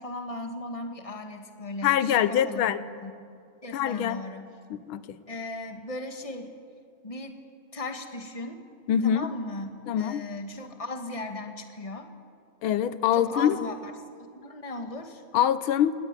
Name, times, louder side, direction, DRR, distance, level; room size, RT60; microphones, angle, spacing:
voice 1, 0.0-3.1 3.6-4.5 5.3-6.5 7.0-7.4 7.7-8.6 9.0-12.1 13.1-13.9 14.3-15.2, left 2 dB, 15° left, 5 dB, 1.7 m, -37 dB
voice 2, 1.8-2.8 3.7-4.2 4.7-5.2 8.9-9.3 9.9-10.2 12.6-13.6 15.3-15.9, left 10 dB, 90° left, 14 dB, 1.7 m, -24 dB
24.5 x 19.0 x 9.8 m, 2.2 s
omnidirectional pair, 2.2 m